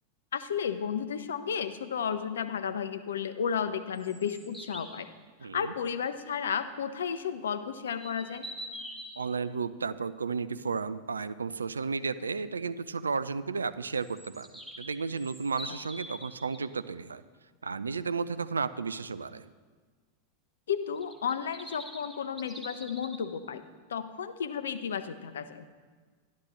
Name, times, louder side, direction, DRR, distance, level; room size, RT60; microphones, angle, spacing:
voice 1, 0.3-5.1 5.4-8.5 20.7-23.6 23.9-25.7, left 7 dB, 65° left, 12 dB, 0.5 m, -33 dB
sound 1, 3.9-5.0 7.9-9.2 14.0-16.6 21.0-23.2, equal, 5° right, 1.1 m, -44 dB
voice 2, 5.4-5.7 9.2-14.5 14.8-17.2 17.6-19.5, right 5 dB, 75° right, 14 dB, 0.3 m, -33 dB
12.0 x 11.5 x 3.1 m, 1.5 s
figure-of-eight pair, 90°, 0 cm